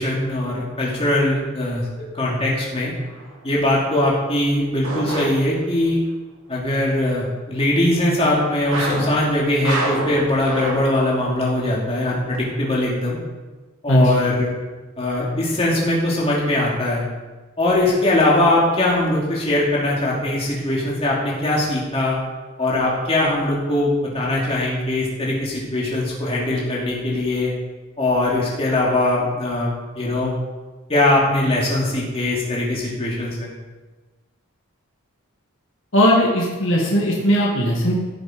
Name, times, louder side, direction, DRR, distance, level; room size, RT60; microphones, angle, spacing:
voice 1, 0.0-1.9 2.1-2.9 3.4-6.0 6.5-13.2 13.8-14.5 15.0-17.0 17.6-22.2 22.6-27.5 28.0-30.3 30.9-33.5, left 1 dB, 25° left, -5 dB, 2.9 m, -21 dB
sound 1, 3.0-3.4 4.8-5.9 8.7-11.2 11.5-11.6 12.3-12.4, right 1 dB, 80° right, 2.6 m, -28 dB
voice 2, 13.9-14.3 35.9-38.0, equal, 60° left, -3 dB, 2.0 m, -18 dB
16.0 x 7.0 x 5.2 m, 1.3 s
head